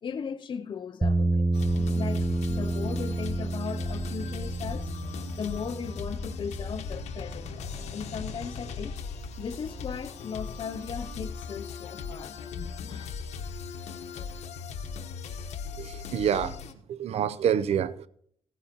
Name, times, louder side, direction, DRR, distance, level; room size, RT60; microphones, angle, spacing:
voice 1, 0.0-1.5 1.8-4.9 5.3-9.0 9.4-13.3 14.0-14.4, left 6 dB, 45° left, 0.6 m, -38 dB
sound 1, 1.0-9.1, right 2 dB, 10° right, 0.6 m, -30 dB
sound 2, 1.5-16.7, left 5 dB, 80° left, 1.1 m, -38 dB
voice 2, 15.8-16.6 16.9-18.1, right 8 dB, 70° right, 0.6 m, -27 dB
16.0 x 10.0 x 2.9 m
cardioid pair, 100°, 11 cm